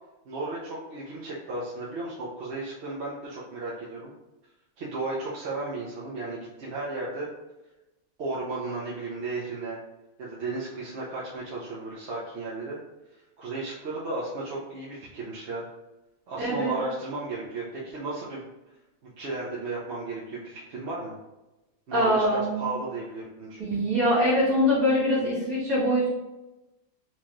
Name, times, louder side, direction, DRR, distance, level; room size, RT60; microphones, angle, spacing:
voice 1, 0.3-4.1 4.8-7.3 8.2-9.8 10.2-12.8 13.4-15.7 16.3-18.5 19.2-21.1 21.9-23.6, right 3 dB, 55° right, -6 dB, 0.8 m, -34 dB
voice 2, 16.4-16.8 21.9-22.6 23.6-26.1, equal, 80° right, -10 dB, 2.0 m, -23 dB
4.5 x 2.3 x 2.9 m, 1.0 s
omnidirectional pair, 1.5 m